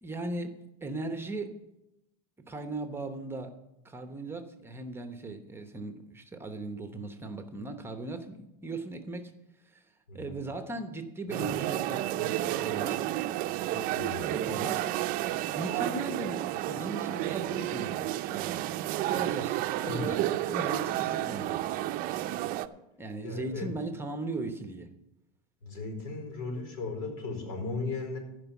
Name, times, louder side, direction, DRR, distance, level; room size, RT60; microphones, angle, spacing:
voice 1, 0.0-1.6 2.4-3.6 3.8-9.3 9.6-9.8 10.1-13.1 13.7-14.9 15.2-18.6 19.1-21.8 23.0-24.9, right 2 dB, 10° right, 7 dB, 0.9 m, -38 dB
sound 1, 11.3-22.7, right 14 dB, 50° right, 0.6 m, -31 dB
voice 2, 13.9-14.2 19.8-20.1 23.2-23.7 25.6-28.2, left 3 dB, 75° left, 4 dB, 4.4 m, -36 dB
15.0 x 5.2 x 7.1 m, 0.91 s
supercardioid pair, 125°, 19 cm